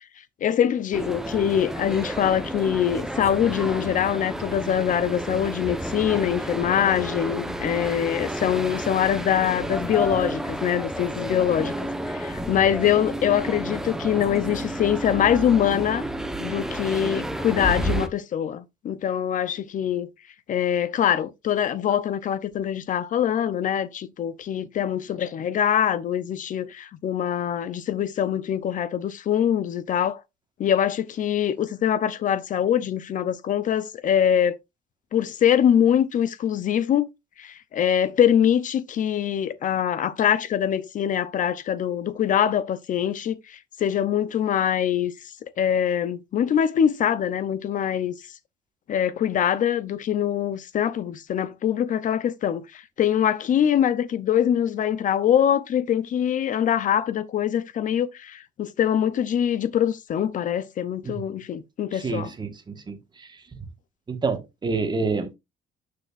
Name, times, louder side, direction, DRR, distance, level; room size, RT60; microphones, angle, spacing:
voice 1, 0.4-11.7 12.1-16.1 16.4-20.1 20.5-30.2 30.6-34.6 35.1-37.1 37.4-48.1 48.9-62.3, left 9 dB, 50° left, 0.6 m, -23 dB
sound 1, 0.9-18.1, right 1 dB, 5° right, 1.0 m, -31 dB
voice 2, 61.9-63.4 64.1-65.3, right 4 dB, 25° right, 1.5 m, -28 dB
7.9 x 6.6 x 2.5 m
cardioid pair, 110°, 17 cm